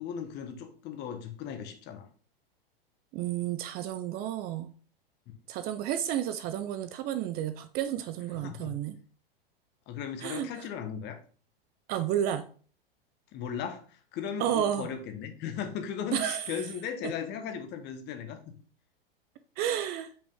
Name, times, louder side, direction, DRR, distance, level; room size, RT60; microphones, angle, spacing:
voice 1, 0.0-2.1 8.4-8.7 9.9-11.2 13.3-18.5, left 8 dB, 35° left, 7 dB, 1.2 m, -37 dB
voice 2, 3.1-4.7 5.5-8.9 10.2-10.5 11.9-12.4 14.4-14.9 16.1-16.4 19.6-20.1, right 10 dB, 35° right, 11 dB, 0.5 m, -31 dB
5.5 x 5.3 x 3.5 m, 0.40 s
hypercardioid pair, 100°, 29 cm